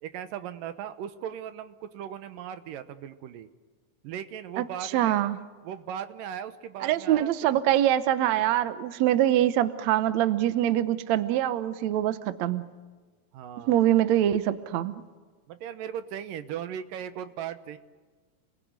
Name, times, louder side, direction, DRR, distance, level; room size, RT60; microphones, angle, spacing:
voice 1, 0.0-3.5 4.0-5.3 5.6-7.6 13.3-13.8 15.5-17.8, right 9 dB, 80° right, 11 dB, 2.8 m, -38 dB
voice 2, 4.6-5.4 6.8-12.7 13.7-14.9, right 12 dB, 65° right, 11 dB, 2.0 m, -24 dB
30.0 x 21.0 x 9.5 m, 1.4 s
omnidirectional pair, 3.8 m